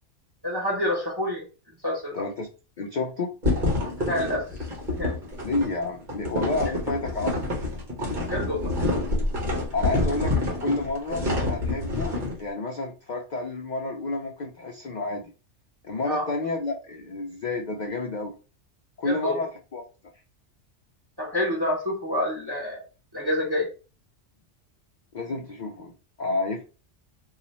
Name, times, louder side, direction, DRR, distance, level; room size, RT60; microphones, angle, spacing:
voice 1, 0.4-1.4 1.8-2.3 4.0-5.1 8.3-8.7 16.0-16.3 19.0-19.4 21.2-22.8 23.1-23.7, left 1 dB, 20° right, -2 dB, 1.0 m, -28 dB
voice 2, 2.1-2.5 2.8-3.3 5.4-7.5 9.7-15.2 15.8-18.3 19.0-19.8 25.1-25.9 26.2-26.6, left 3 dB, 55° left, 2 dB, 0.5 m, -30 dB
sound 1, 3.4-12.4, left 2 dB, 40° right, 1.2 m, -27 dB
2.9 x 2.4 x 4.0 m, 0.34 s
omnidirectional pair, 1.3 m